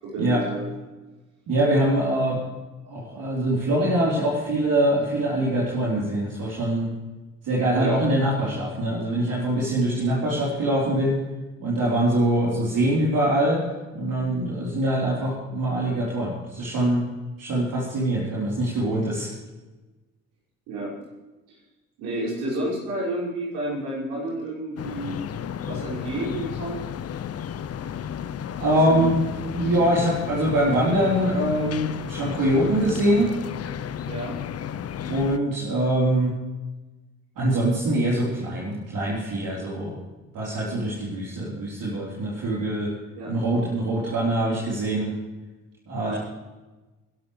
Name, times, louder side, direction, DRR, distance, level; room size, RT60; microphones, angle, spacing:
voice 1, 0.0-0.7 7.7-7.9 20.7-20.9 22.0-25.2 25.7-26.8 28.7-29.0 34.1-34.3 43.1-43.3 46.0-46.2, right 1 dB, 70° right, -7 dB, 6.1 m, -30 dB
voice 2, 1.5-2.4 2.9-6.9 7.4-11.2 11.6-13.6 13.9-17.1 17.4-19.3 28.6-29.2 29.5-33.3 35.1-36.3 37.4-40.0 40.3-42.9 43.2-45.1 45.9-46.2, right 1 dB, 55° right, -6 dB, 4.2 m, -23 dB
sound 1, 24.8-35.4, left 8 dB, 35° left, 0.8 m, -33 dB
26.0 x 12.0 x 3.3 m, 1.2 s
figure-of-eight pair, 45°, 40 cm